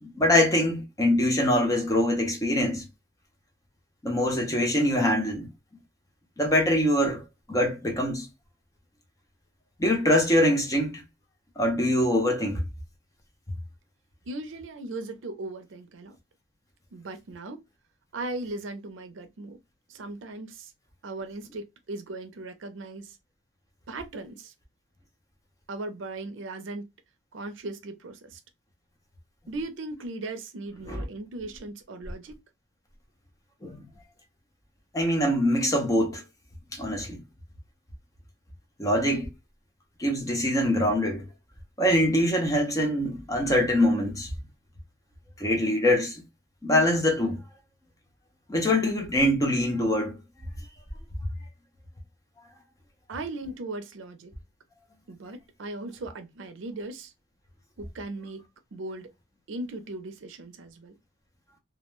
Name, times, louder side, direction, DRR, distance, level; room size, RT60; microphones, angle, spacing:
voice 1, 0.0-2.9 4.0-5.5 6.4-7.2 7.5-8.3 9.8-11.0 11.6-12.6 30.9-31.0 33.6-33.8 34.9-36.2 36.7-37.2 38.8-39.3 40.0-41.2 41.8-44.3 45.4-46.2 46.6-47.4 48.5-50.2, left 1 dB, 15° left, 0.5 m, -24 dB
voice 2, 14.3-16.2 16.9-17.6 18.1-19.6 19.9-20.7 21.0-23.1 23.9-24.5 25.7-26.9 27.3-28.4 29.5-32.4 53.1-54.3 55.1-57.1 57.8-58.4 58.7-59.1 59.5-60.9, right 2 dB, 75° right, 0.5 m, -38 dB
2.3 x 2.1 x 2.9 m
head